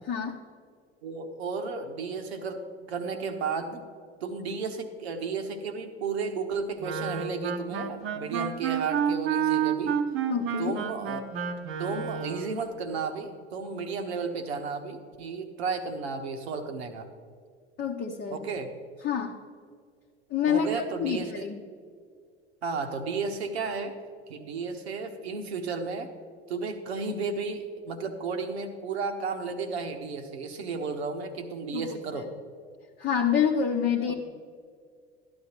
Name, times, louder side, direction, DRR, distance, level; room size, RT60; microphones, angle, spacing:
voice 1, 0.1-0.4 10.3-10.8 17.8-18.4 19.0-19.4 20.3-21.6 31.7-31.8 32.1-32.2 33.0-34.1, left 7 dB, 30° left, 0 dB, 0.9 m, -27 dB
voice 2, 1.0-2.6 2.9-3.8 4.2-10.0 10.6-11.2 11.8-17.1 18.3-18.7 20.5-21.5 22.6-23.9 24.3-26.1 26.5-32.3 34.1-34.2, right 4 dB, 70° right, 7 dB, 1.2 m, -33 dB
Wind instrument woodwind instrument, 6.8-12.6, right 8 dB, 40° right, 0.9 m, -30 dB
13.0 x 11.0 x 3.0 m, 2.1 s
figure-of-eight pair, 75°, 33 cm